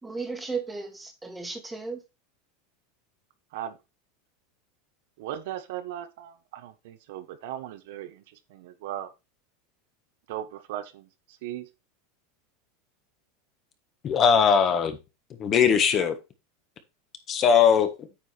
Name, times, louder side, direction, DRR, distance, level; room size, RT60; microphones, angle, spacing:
voice 1, 0.0-2.0, right 4 dB, 5° right, 1.6 m, -35 dB
voice 2, 5.2-8.2 8.5-9.1 10.3-11.7, right 12 dB, 70° right, 1.2 m, -37 dB
voice 3, 14.0-15.0 15.4-16.2 17.3-17.9, left 7 dB, 30° left, 1.5 m, -20 dB
9.1 x 5.0 x 4.4 m
supercardioid pair, 150°, 0 cm